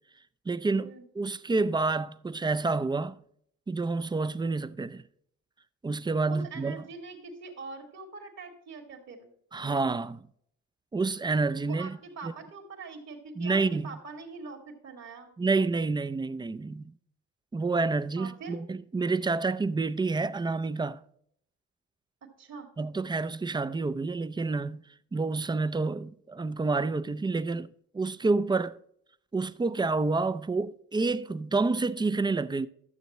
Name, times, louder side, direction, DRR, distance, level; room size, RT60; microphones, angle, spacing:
voice 1, 0.5-3.2 3.7-5.0 5.8-6.8 9.5-10.3 10.9-12.0 12.2-12.3 13.4-14.0 15.4-16.9 17.5-21.0 22.8-24.8 25.1-28.8 29.3-32.7, right 3 dB, 15° right, 0.4 m, -28 dB
voice 2, 6.3-9.3 11.6-15.3 18.2-18.6 22.4-22.7, right 4 dB, 60° right, 2.4 m, -43 dB
12.0 x 7.0 x 3.1 m
cardioid pair, 90°, 30 cm